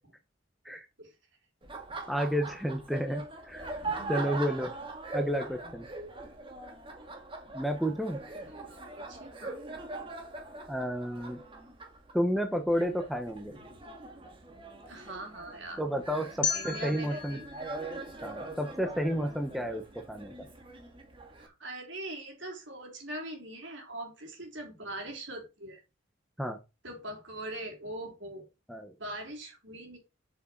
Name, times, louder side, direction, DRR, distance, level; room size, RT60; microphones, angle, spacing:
voice 1, 0.7-1.1 4.5-4.9 8.5-9.6 14.9-15.8 16.5-17.5 21.4-25.8 26.8-28.4 29.0-30.0, right 1 dB, 60° right, 2 dB, 3.7 m, -42 dB
Laughter, 1.6-21.5, right 2 dB, 25° right, 1.8 m, -42 dB
voice 2, 2.1-3.7 4.1-4.7 5.1-5.9 7.5-8.2 10.7-11.4 12.1-13.5 15.8-17.4 18.2-19.8 20.1-20.3 26.4-26.6 28.7-28.9, equal, ahead, 5 dB, 0.9 m, -31 dB
sound 1, 16.4-19.4, left 6 dB, 60° left, 2.0 m, -37 dB
7.8 x 6.3 x 4.5 m, 0.26 s
head